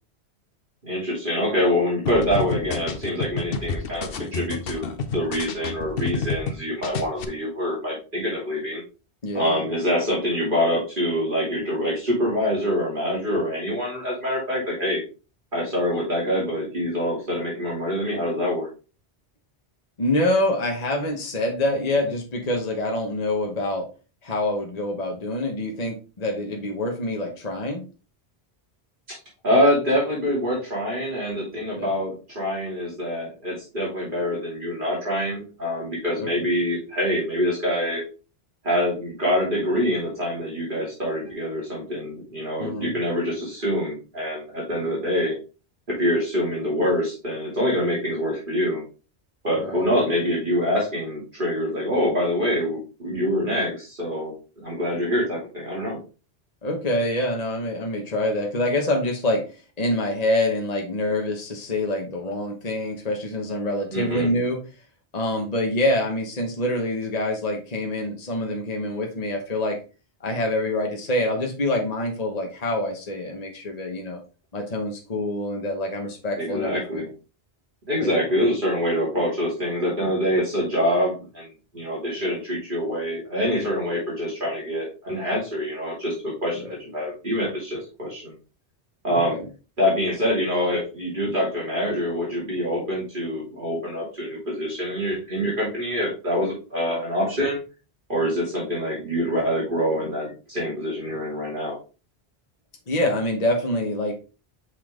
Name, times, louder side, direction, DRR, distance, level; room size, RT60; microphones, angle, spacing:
voice 1, 0.8-8.8 9.3-15.0 15.5-18.7 29.1-29.2 29.4-38.0 38.6-45.3 45.9-48.8 49.4-54.3 54.6-56.0 63.9-64.3 76.4-77.1 77.9-81.5 81.7-88.3 89.0-89.4 89.8-97.6 98.1-101.8, equal, 50° right, -5 dB, 3.0 m, -25 dB
sound 1, 2.1-6.5 6.8-7.2, left 4 dB, 60° left, 1.0 m, -29 dB
voice 2, 9.2-9.6 20.0-23.9 24.2-27.8 31.8-31.9 36.2-36.4 42.6-43.0 49.6-49.9 56.6-59.5 59.8-64.6 65.1-69.8 70.2-74.2 74.5-77.0 78.0-78.3 86.5-86.7 89.1-89.4 100.0-100.1 102.9-104.1, left 1 dB, 40° left, 2 dB, 1.3 m, -26 dB
6.0 x 5.6 x 3.7 m, 0.33 s
omnidirectional pair, 1.1 m